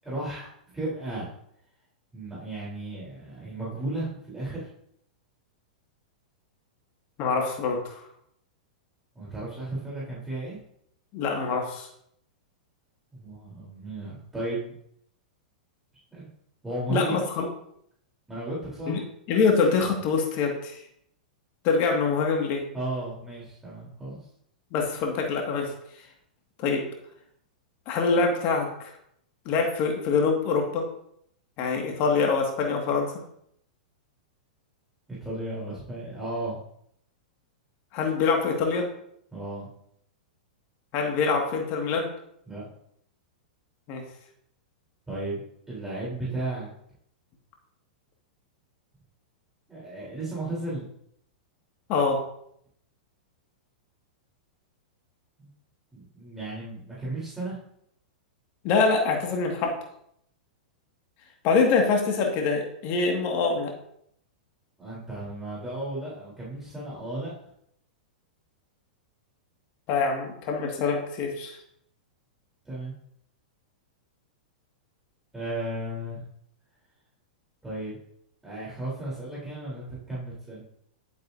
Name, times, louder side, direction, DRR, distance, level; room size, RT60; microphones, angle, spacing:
voice 1, 0.0-0.5 0.7-1.3 2.1-4.7 9.1-10.6 13.1-14.7 16.1-16.3 16.6-17.2 18.3-19.1 22.7-24.3 35.1-36.6 39.3-39.7 42.5-42.6 45.1-45.4 45.7-46.7 49.7-50.9 55.4-55.5 55.9-57.6 64.8-67.3 72.6-72.9 75.3-76.2 77.6-78.0 78.4-80.6, right 2 dB, 10° right, -7 dB, 3.8 m, -34 dB
voice 2, 7.2-8.0 11.1-11.9 16.9-17.4 18.9-19.0 19.3-20.8 21.6-22.6 24.7-25.7 26.6-26.9 27.9-28.7 29.5-30.9 31.6-33.1 37.9-38.9 40.9-42.1 43.9-44.0 51.9-52.2 58.6-59.7 61.4-63.7 69.9-71.6, left 4 dB, 45° left, 2 dB, 2.1 m, -24 dB
11.0 x 8.1 x 2.8 m, 0.71 s
hypercardioid pair, 105°, 4 cm